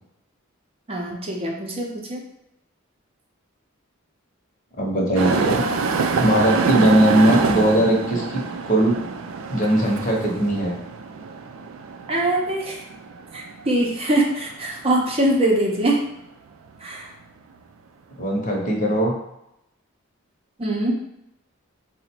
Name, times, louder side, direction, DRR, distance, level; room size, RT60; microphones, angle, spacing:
voice 1, 0.9-2.2 12.1-12.8 13.3-16.0 16.8-17.1 20.6-20.9, right 1 dB, 30° right, -2 dB, 0.6 m, -23 dB
voice 2, 4.8-5.6 6.2-9.0 9.5-10.8 18.2-19.1, right 1 dB, 40° left, -1 dB, 0.9 m, -19 dB
sound 1, 5.1-14.7 15.3-15.4 16.2-16.3, right 4 dB, 75° right, 0.4 m, -26 dB
3.8 x 2.1 x 4.3 m, 0.83 s
head